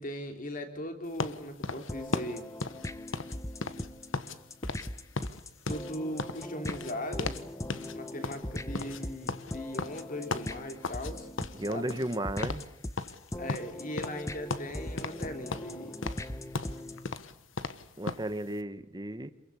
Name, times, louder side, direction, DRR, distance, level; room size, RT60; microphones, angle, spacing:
voice 1, 0.0-2.5 5.7-7.4 7.9-11.3 11.7-12.0 13.4-16.0, left 1 dB, 40° left, 6 dB, 3.4 m, -39 dB
sound 1, 1.2-4.4 4.6-4.9 5.2-7.5 7.7-8.0 8.2-11.1 11.4-12.2 12.4-12.7 13.0-14.2 14.5-15.3 15.5-18.3, left 3 dB, 75° left, 1.3 m, -36 dB
sound 2, 1.9-17.1, left 1 dB, 15° left, 0.9 m, -40 dB
voice 2, 11.6-12.7 18.0-19.3, right 1 dB, 20° right, 11 dB, 1.2 m, -34 dB
27.5 x 22.5 x 8.5 m, 0.84 s
head